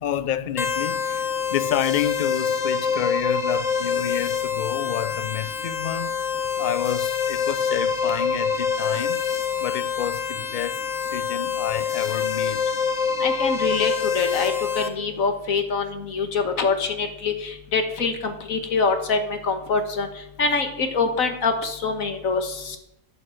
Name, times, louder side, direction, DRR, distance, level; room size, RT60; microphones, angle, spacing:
voice 1, 0.0-6.2 6.6-9.2 9.6-12.6, left 10 dB, 50° left, 0.6 m, -29 dB
sound 1, 0.6-14.9, left 6 dB, 70° left, 1.6 m, -26 dB
voice 2, 13.2-20.1 20.4-22.8, left 4 dB, 90° left, 1.9 m, -25 dB
11.5 x 8.3 x 7.7 m
omnidirectional pair, 1.4 m